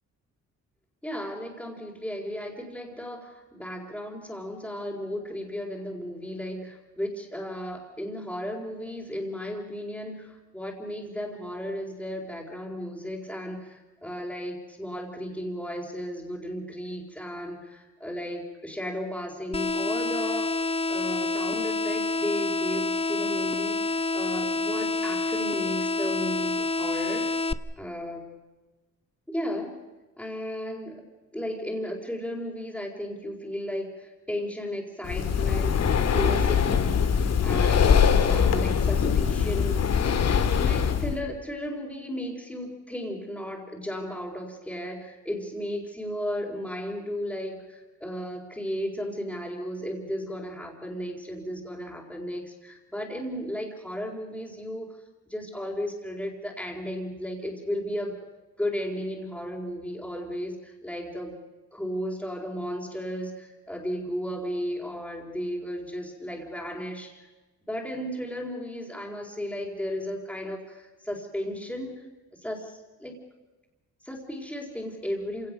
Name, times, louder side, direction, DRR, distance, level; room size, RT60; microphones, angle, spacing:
voice 1, 1.0-27.3 27.8-28.3 29.3-29.8 30.2-31.0 31.3-35.8 36.0-40.2 40.6-54.9 55.3-58.2 58.6-61.4 61.7-67.2 67.7-72.0 72.4-73.2 74.0-75.5, equal, 5° left, -5 dB, 4.5 m, -34 dB
sound 1, 19.5-27.5, left 3 dB, 20° left, 0.9 m, -28 dB
Breathing, 35.0-41.2, left 7 dB, 55° left, 2.1 m, -22 dB
27.0 x 18.0 x 6.7 m, 1.2 s
cardioid pair, 90°, 30 cm